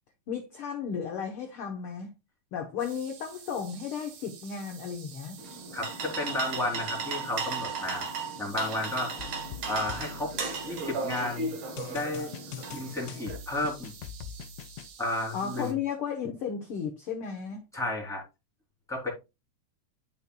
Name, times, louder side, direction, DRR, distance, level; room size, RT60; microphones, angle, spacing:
voice 1, 0.3-2.1 2.5-5.4 15.3-17.6, left 7 dB, 65° left, 1.5 m, -34 dB
sound 1, 2.8-15.7, right 8 dB, 80° right, 2.9 m, -50 dB
sound 2, 5.4-13.4, right 4 dB, 50° right, 1.8 m, -36 dB
voice 2, 5.7-8.1 8.4-9.1 9.7-10.3 10.6-11.5 11.9-12.3 12.7-13.9 15.0-15.8 17.7-18.2 18.9-19.1, left 2 dB, ahead, 2.7 m, -32 dB
sound 3, 9.2-11.0 11.8-14.9, left 8 dB, 80° left, 1.6 m, -43 dB
11.0 x 5.4 x 2.3 m
omnidirectional pair, 3.6 m